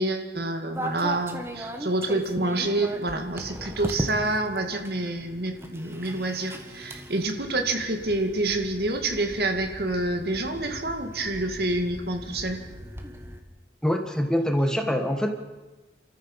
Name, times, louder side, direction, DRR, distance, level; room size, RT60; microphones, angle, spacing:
voice 1, 0.0-12.6, right 2 dB, 65° right, 5 dB, 2.3 m, -27 dB
sound 1, 0.7-13.4, right 1 dB, 15° right, 1.8 m, -38 dB
voice 2, 13.8-15.3, equal, 5° left, 5 dB, 1.6 m, -24 dB
30.0 x 14.0 x 7.4 m, 1.2 s
head